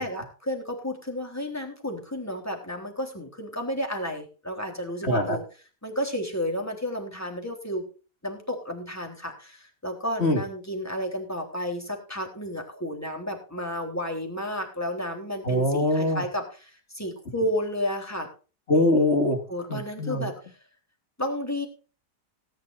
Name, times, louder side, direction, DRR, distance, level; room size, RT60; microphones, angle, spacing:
voice 1, 0.0-5.4 5.8-7.8 8.2-18.3 19.5-20.4 21.2-21.7, equal, 10° left, 3 dB, 3.5 m, -32 dB
voice 2, 5.0-5.4 10.2-10.4 15.4-16.2 18.7-19.4 19.7-20.3, left 1 dB, 40° left, 5 dB, 2.5 m, -23 dB
18.5 x 10.5 x 2.6 m, 0.36 s
omnidirectional pair, 1.9 m